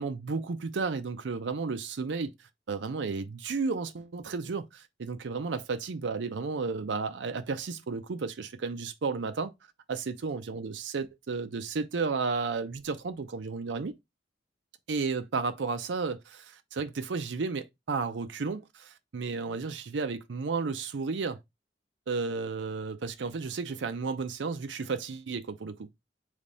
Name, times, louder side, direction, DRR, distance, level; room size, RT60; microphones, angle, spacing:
voice 1, 0.0-2.3 2.7-9.5 9.9-14.0 14.9-21.4 22.1-25.9, right 4 dB, 85° right, 0.5 m, -33 dB
3.4 x 3.1 x 3.9 m
head